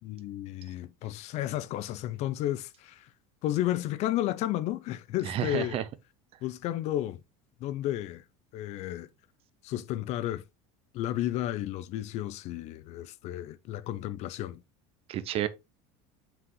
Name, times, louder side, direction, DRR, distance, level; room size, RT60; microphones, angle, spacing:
voice 1, 0.0-3.1 3.4-5.8 6.4-7.2 7.6-8.2 8.5-9.1 9.6-10.4 10.9-14.6, left 13 dB, 45° left, 0.6 m, -32 dB
voice 2, 5.2-5.8 15.1-15.5, right 11 dB, 40° right, 0.8 m, -30 dB
7.5 x 5.9 x 3.1 m
cardioid pair, 150°, 15 cm